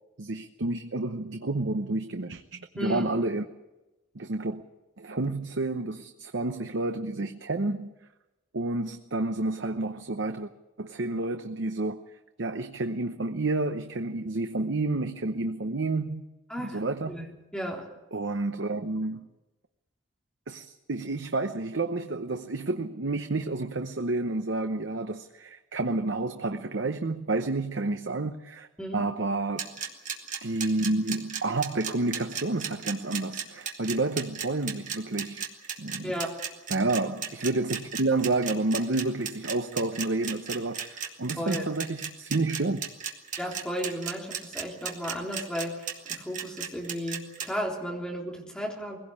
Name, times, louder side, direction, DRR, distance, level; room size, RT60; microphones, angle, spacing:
voice 1, 0.2-3.4 4.1-4.6 5.0-7.9 8.5-10.5 10.8-12.0 12.4-16.2 16.6-17.3 18.1-19.3 20.5-28.7 28.9-29.8 30.4-35.4 35.8-36.1 36.7-42.8, right 2 dB, 70° right, 0.9 m, -30 dB
voice 2, 2.8-3.1 16.5-16.8 17.1-17.3 17.5-17.9 28.8-29.0 36.0-36.3 41.4-41.7 43.4-49.0, equal, 5° left, 3.6 m, -34 dB
sound 1, 29.6-47.5, right 7 dB, 40° right, 2.3 m, -34 dB
22.0 x 17.0 x 8.6 m
head